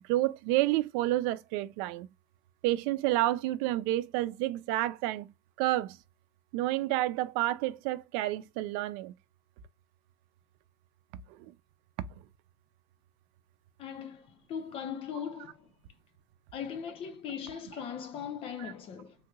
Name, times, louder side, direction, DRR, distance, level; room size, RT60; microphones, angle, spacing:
voice 1, 0.0-2.1 2.6-5.3 5.6-6.0 6.5-9.1 11.3-11.4 18.6-18.7, right 16 dB, 90° right, 0.4 m, -29 dB
voice 2, 13.8-15.7 16.5-19.2, left 7 dB, 50° left, 0.8 m, -39 dB
3.4 x 2.9 x 2.3 m
cardioid pair, 135°, 12 cm